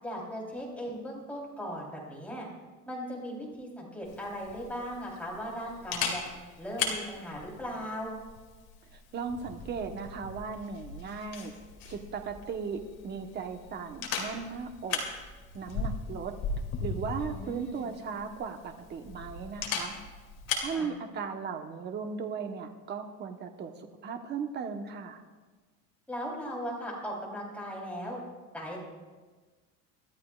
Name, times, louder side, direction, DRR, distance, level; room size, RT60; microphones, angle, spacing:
voice 1, 0.0-2.5 2.9-6.2 6.6-8.1 17.2-17.9 20.7-20.9 26.1-28.2 28.5-28.8, equal, 5° left, -3 dB, 3.6 m, -38 dB
Camera, 4.0-20.7, left 5 dB, 45° left, 2.7 m, -38 dB
voice 2, 8.9-11.5 11.8-15.0 15.5-16.3 16.8-20.0 20.6-25.2, right 5 dB, 30° right, 5 dB, 1.1 m, -37 dB
24.0 x 13.0 x 2.4 m, 1.4 s
cardioid pair, 160°, 34 cm